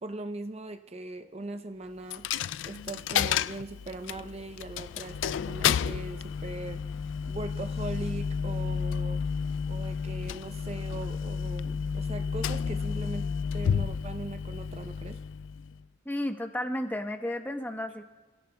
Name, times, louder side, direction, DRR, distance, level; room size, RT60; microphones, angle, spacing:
voice 1, 0.0-2.3 2.7-6.8 7.3-9.2 9.7-13.3 13.5-15.2, right 2 dB, 35° right, 7 dB, 0.6 m, -40 dB
Coin (dropping), 2.1-15.8, left 7 dB, 70° left, 0.3 m, -31 dB
voice 2, 16.0-18.0, left 1 dB, 10° left, 5 dB, 1.0 m, -32 dB
29.0 x 16.5 x 2.3 m, 1.3 s
head